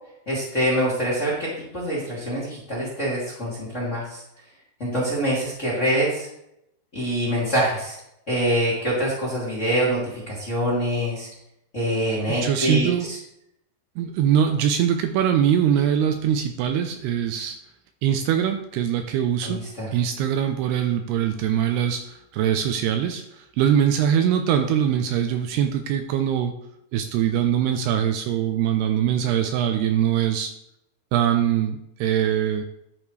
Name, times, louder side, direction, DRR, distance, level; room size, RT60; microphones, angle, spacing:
voice 1, 0.3-4.2 4.8-6.3 6.9-8.0 8.3-11.3 11.7-13.2 19.4-19.9, equal, 20° left, -6 dB, 2.0 m, -25 dB
voice 2, 12.3-13.1 14.0-17.6 18.0-19.6 19.9-26.5 26.9-30.5 31.1-32.6, right 9 dB, 80° right, 6 dB, 2.5 m, -22 dB
11.0 x 8.9 x 3.3 m, 0.79 s
omnidirectional pair, 5.0 m